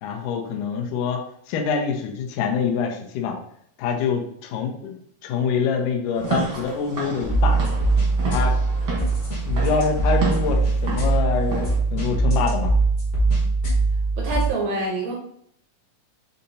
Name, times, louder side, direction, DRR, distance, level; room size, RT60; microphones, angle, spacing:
voice 1, 0.0-3.4 3.8-4.9 5.2-7.6 8.3-8.5 9.5-12.7, left 6 dB, 80° left, 1 dB, 2.0 m, -25 dB
Walk footsteps / Siren, 6.1-11.7, right 3 dB, 60° right, 1.1 m, -31 dB
sound 1, 7.2-14.5, right 3 dB, 55° left, 1.0 m, -21 dB
voice 2, 14.2-15.1, right 2 dB, 80° right, -1 dB, 1.6 m, -26 dB
6.6 x 2.7 x 2.7 m, 0.68 s
omnidirectional pair, 4.0 m